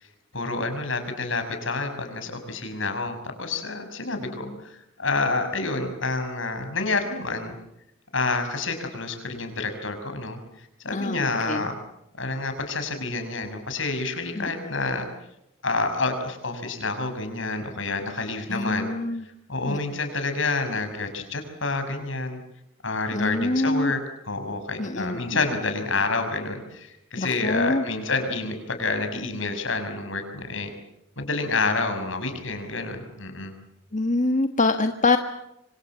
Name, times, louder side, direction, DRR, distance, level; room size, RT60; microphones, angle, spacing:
voice 1, 0.3-7.5 8.1-11.8 12.2-15.1 15.6-18.9 19.5-22.4 22.8-24.0 24.2-30.7 31.2-33.5, left 3 dB, 75° left, 7 dB, 6.3 m, -28 dB
voice 2, 4.1-4.6 10.9-11.7 14.4-14.7 18.5-19.2 19.7-19.8 23.1-23.9 24.8-25.4 27.2-27.8 33.9-35.2, left 2 dB, 40° left, 7 dB, 1.4 m, -25 dB
27.5 x 25.5 x 7.4 m, 0.82 s
head